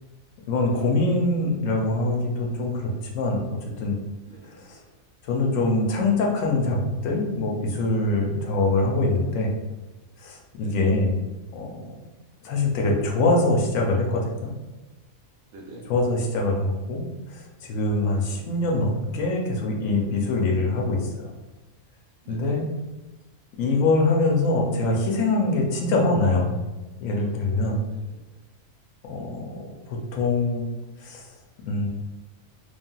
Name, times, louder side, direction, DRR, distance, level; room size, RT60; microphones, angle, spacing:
voice 1, 0.5-3.4 3.8-4.0 4.7-4.8 5.2-9.5 10.2-11.2 11.5-12.0 12.4-14.5 15.9-17.0 17.3-21.3 22.3-22.6 23.6-26.6 27.0-27.9 29.0-29.6 29.9-30.7 31.0-31.2 31.6-31.9, left 2 dB, 75° left, 0 dB, 1.0 m, -24 dB
voice 2, 4.3-4.8 10.6-10.9 15.5-15.9 22.2-22.7 27.5-28.3, right 2 dB, 85° right, 0 dB, 1.1 m, -46 dB
3.2 x 2.4 x 2.2 m, 1.1 s
omnidirectional pair, 1.4 m